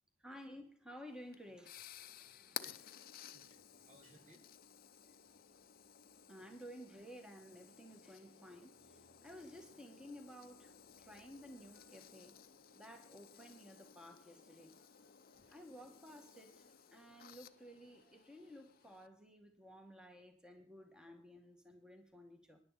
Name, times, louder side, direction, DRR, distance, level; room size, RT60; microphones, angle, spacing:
voice 1, 0.2-2.6 6.3-12.4 12.7-14.7 15.5-22.6, equal, 5° right, 1.9 m, -55 dB
sound 1, 1.1-19.1, left 10 dB, 50° left, 0.7 m, -56 dB
sound 2, 2.0-19.0, right 1 dB, 75° right, 4.7 m, -74 dB
voice 2, 2.6-4.6 5.1-5.2 5.5-5.6 15.3-15.5, equal, 40° right, 1.9 m, -65 dB
24.0 x 11.0 x 4.2 m
head